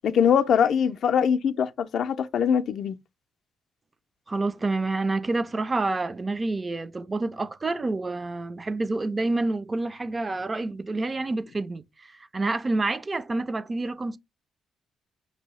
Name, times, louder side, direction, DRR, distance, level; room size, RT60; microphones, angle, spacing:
voice 1, 0.0-3.0, left 7 dB, 65° left, 0.4 m, -22 dB
voice 2, 4.3-11.8 12.3-14.2, right 2 dB, 25° right, 0.3 m, -28 dB
5.3 x 2.7 x 3.0 m
cardioid pair, 90°, 0 cm